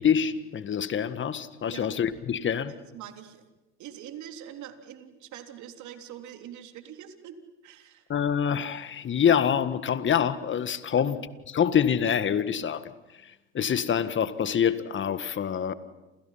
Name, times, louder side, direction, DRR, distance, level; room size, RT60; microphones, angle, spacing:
voice 1, 0.0-2.7 8.1-11.2 11.5-12.8 13.2-15.7, left 8 dB, 35° left, 13 dB, 1.8 m, -26 dB
voice 2, 2.7-3.4 3.8-7.4 7.6-8.1 11.0-11.2, right 10 dB, 55° right, 6 dB, 3.5 m, -44 dB
29.0 x 28.5 x 5.8 m, 1.0 s
hypercardioid pair, 85°, 35 cm